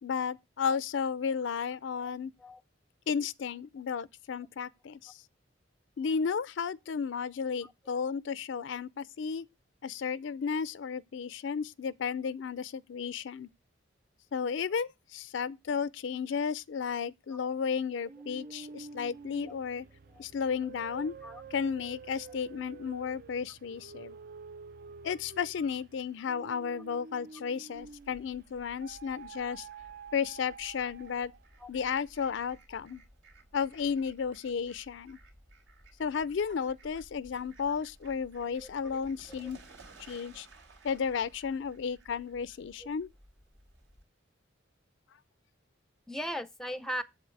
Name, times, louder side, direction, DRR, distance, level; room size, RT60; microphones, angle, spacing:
voice 1, 0.0-2.3 3.1-5.2 6.0-9.5 9.8-13.5 14.3-19.9 20.2-21.1 21.5-24.2 25.0-29.7 30.1-31.3 31.7-33.0 33.5-35.2 36.0-39.6 40.1-40.5 40.8-43.1, left 6 dB, 70° left, 0.4 m, -33 dB
voice 2, 2.0-2.6 7.6-7.7 17.3-17.5 19.5-19.6 20.1-20.2 20.9-21.4 31.6-31.7 38.6-39.0 42.8-42.9 46.1-47.0, equal, ahead, 0.5 m, -40 dB
sound 1, 18.1-28.3 28.8-31.6, right 5 dB, 50° right, 0.3 m, -49 dB
Fowl, 27.7-44.0, right 2 dB, 80° right, 3.4 m, -57 dB
7.9 x 7.6 x 3.2 m
head